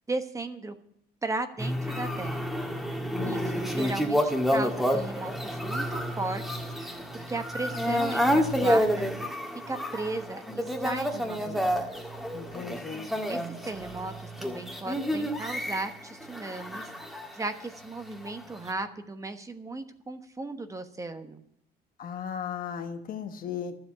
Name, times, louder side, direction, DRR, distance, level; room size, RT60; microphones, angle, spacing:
voice 1, 0.1-0.7 1.2-2.5 3.2-7.0 7.3-9.1 9.7-11.6 13.3-16.9 17.3-21.4, right 2 dB, 20° right, 8 dB, 1.2 m, -36 dB
sound 1, 1.6-17.8 18.2-18.7, equal, ahead, 1.8 m, -29 dB
voice 2, 3.1-3.9 12.3-13.1 22.0-23.8, left 7 dB, 55° left, 7 dB, 1.4 m, -36 dB
12.0 x 7.8 x 8.7 m, 0.73 s
cardioid pair, 110°, 17 cm